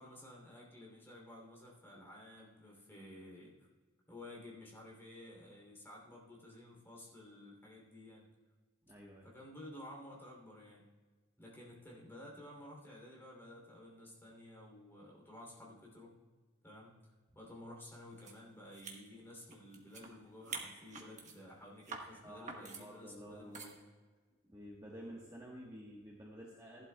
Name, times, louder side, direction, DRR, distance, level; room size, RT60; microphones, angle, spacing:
voice 1, 0.0-3.5 4.1-8.3 9.2-10.8 11.4-16.1 16.6-16.9 17.3-23.8, left 1 dB, 10° left, -3 dB, 2.9 m, -53 dB
voice 2, 8.8-9.3 22.2-23.7 24.4-26.8, equal, 15° right, -3 dB, 1.2 m, -51 dB
sound 1, 18.3-18.4 18.7-20.1 20.4-21.4 21.8-22.1 22.5-22.8 23.5-23.8, right 4 dB, 35° right, 1.4 m, -46 dB
15.5 x 11.5 x 2.3 m, 1.4 s
head